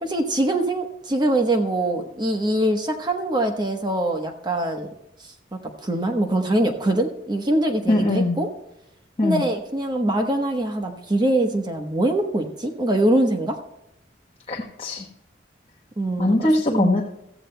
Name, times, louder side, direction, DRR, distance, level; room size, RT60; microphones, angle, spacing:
voice 1, 0.0-4.9 5.2-5.3 5.6-8.5 9.2-13.6 16.0-16.9, right 1 dB, 25° right, 4 dB, 1.0 m, -23 dB
voice 2, 7.9-8.4 9.2-9.4 14.5-15.1 16.2-17.0, left 2 dB, 35° left, -1 dB, 1.1 m, -21 dB
16.5 x 14.0 x 2.2 m, 0.88 s
head